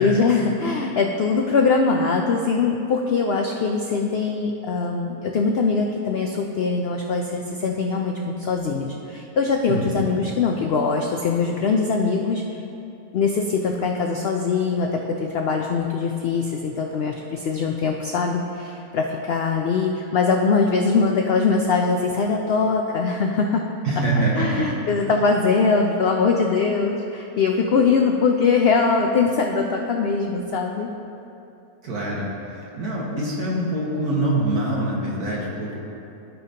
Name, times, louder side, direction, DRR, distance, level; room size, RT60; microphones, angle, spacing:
voice 1, 0.0-12.4 13.1-23.6 24.0-24.1 24.3-30.9, left 4 dB, 90° left, 2 dB, 0.5 m, -22 dB
voice 2, 9.7-10.1 23.8-24.7 31.8-32.3 32.8-35.8, right 1 dB, 75° right, -5 dB, 2.0 m, -24 dB
14.5 x 5.1 x 2.8 m, 2.8 s
omnidirectional pair, 1.7 m